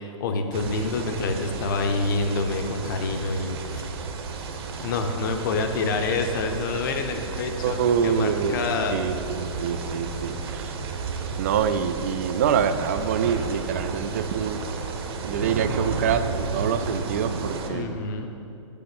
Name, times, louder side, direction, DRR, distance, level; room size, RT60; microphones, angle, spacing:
voice 1, 0.0-3.8 4.8-9.0 17.7-18.3, left 3 dB, 40° left, 5 dB, 0.8 m, -27 dB
sound 1, 0.5-17.7, right 4 dB, 50° right, 0.9 m, -32 dB
voice 2, 7.6-10.7 11.4-14.7 15.3-17.9, right 7 dB, 30° right, 11 dB, 0.3 m, -26 dB
6.9 x 6.3 x 7.8 m, 2.8 s
hypercardioid pair, 170°, 17 cm